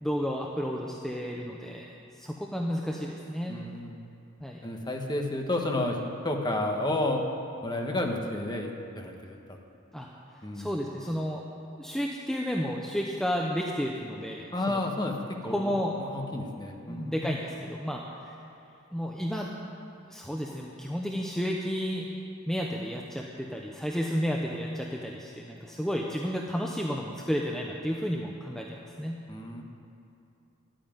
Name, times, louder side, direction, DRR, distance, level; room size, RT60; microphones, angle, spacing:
voice 1, 0.0-3.6 4.4-4.6 9.9-10.1 10.5-11.4 11.8-14.8 15.5-15.9 16.9-18.4 18.9-19.5 20.1-29.2, equal, ahead, -1 dB, 0.7 m, -32 dB
voice 2, 3.5-3.9 4.6-6.0 6.2-7.2 7.6-8.7 8.9-9.6 10.4-10.8 14.5-15.2 15.4-15.7 16.0-17.4 29.3-29.6, left 1 dB, 20° left, 2 dB, 1.2 m, -31 dB
11.5 x 8.8 x 9.0 m, 2.7 s
head